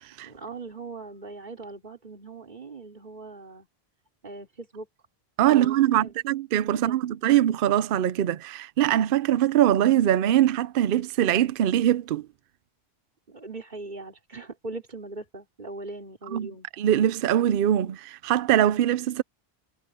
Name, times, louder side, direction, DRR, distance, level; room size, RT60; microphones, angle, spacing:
voice 1, 0.2-3.7 4.2-4.9 5.5-6.1 6.7-7.0 13.3-16.7, right 3 dB, 45° right, 3.6 m, -40 dB
voice 2, 5.4-12.3 16.3-16.5 16.8-19.2, right 11 dB, 65° right, 0.7 m, -22 dB
omnidirectional pair, 1.1 m